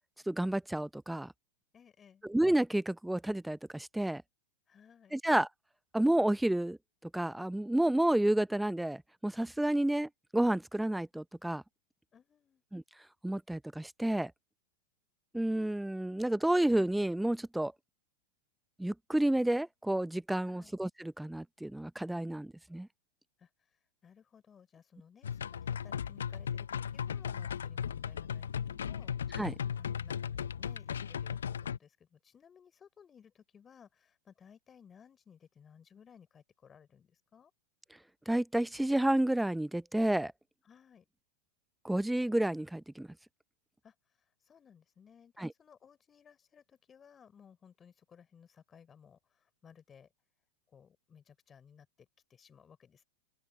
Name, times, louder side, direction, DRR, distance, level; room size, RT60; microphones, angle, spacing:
voice 1, 0.3-1.3 2.2-4.2 5.1-5.5 5.9-6.8 7.1-11.6 12.7-12.8 13.2-14.3 15.3-17.7 18.8-22.9 29.3-29.5 38.3-40.3 41.8-43.1 45.4-45.5, right 1 dB, 5° right, 0.6 m, -30 dB
voice 2, 1.7-2.2 4.7-5.2 12.1-12.6 20.4-20.8 23.4-23.5 24.0-29.5 29.8-37.5 40.6-41.1 43.8-43.9 44.5-50.1 50.7-53.0, left 7 dB, 25° left, 3.5 m, -59 dB
sound 1, 25.2-31.8, left 8 dB, 80° left, 0.5 m, -36 dB
open air
hypercardioid pair, 100°, 0 cm